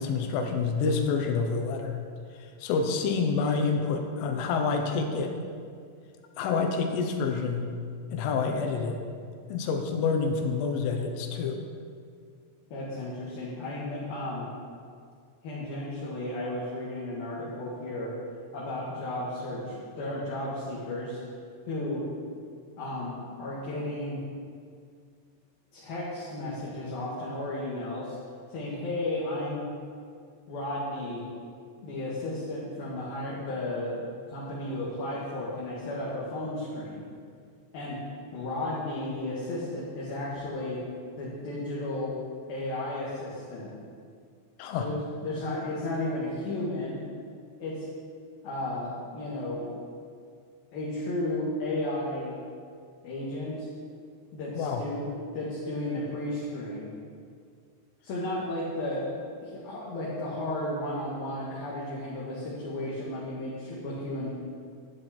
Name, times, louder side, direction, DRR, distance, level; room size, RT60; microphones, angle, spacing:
voice 1, 0.0-2.0 2.6-5.3 6.4-7.7 8.1-9.0 9.5-11.6 44.6-44.9 54.6-54.8, left 5 dB, 80° left, 4 dB, 3.5 m, -28 dB
voice 2, 12.7-14.5 15.4-18.1 18.5-21.2 21.7-22.0 22.8-24.2 25.7-28.2 28.5-29.7 30.5-31.2 31.8-34.0 34.3-37.0 37.7-38.0 38.3-40.8 41.2-42.1 42.5-43.7 44.8-47.0 47.6-47.9 48.4-49.7 50.7-52.4 53.0-53.7 54.3-55.0 55.3-56.9 58.0-59.1 59.4-64.3, left 1 dB, 55° left, -7 dB, 3.0 m, -33 dB
12.5 x 11.0 x 4.4 m, 2.2 s
omnidirectional pair, 5.9 m